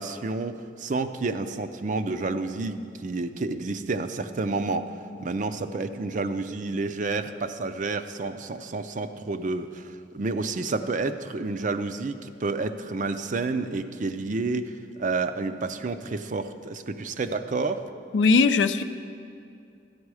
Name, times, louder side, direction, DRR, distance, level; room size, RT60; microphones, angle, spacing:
voice 1, 0.0-4.9 5.2-14.7 15.0-17.8, right 3 dB, 45° right, 10 dB, 0.5 m, -30 dB
voice 2, 18.1-18.8, left 4 dB, 85° left, 10 dB, 0.5 m, -19 dB
13.0 x 9.6 x 4.8 m, 2.5 s
head